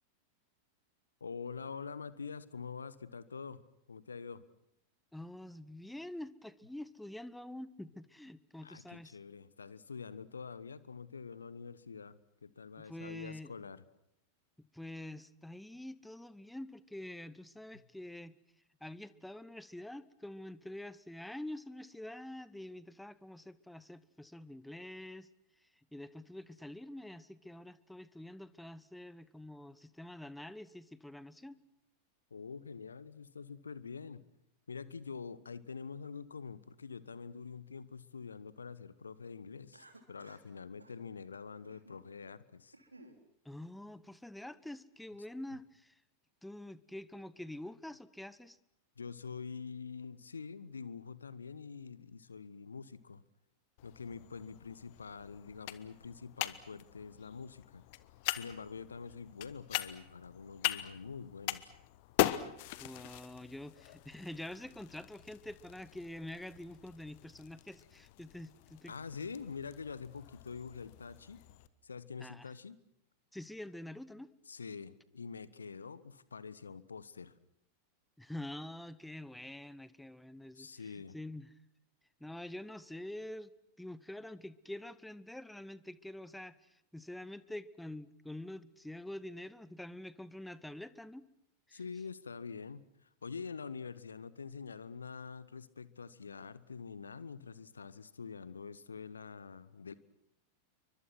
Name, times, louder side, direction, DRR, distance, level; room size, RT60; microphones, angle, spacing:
voice 1, 1.2-3.6 3.9-4.4 8.6-13.8 32.3-34.3 34.7-42.7 49.0-53.2 53.8-57.8 58.3-61.7 68.9-71.4 71.8-72.8 74.5-77.3 80.5-81.2 91.7-99.9, left 5 dB, 75° left, 18 dB, 1.2 m, -46 dB
voice 2, 5.1-9.2 12.8-13.5 14.6-18.3 18.8-25.3 25.9-31.6 43.4-45.9 46.4-48.6 62.8-68.9 72.2-72.5 73.3-74.3 78.2-81.5 82.2-83.5 83.8-91.2 91.7-91.8, left 1 dB, 5° left, 17 dB, 1.1 m, -46 dB
Cough, 39.7-40.5 40.8-41.0 41.6-42.1 42.5-43.2, right 2 dB, 80° right, 3.1 m, -58 dB
sound 1, 53.8-71.7, left 17 dB, 50° left, 1.2 m, -41 dB
30.0 x 24.0 x 6.1 m, 0.77 s
figure-of-eight pair, 90°, 0 cm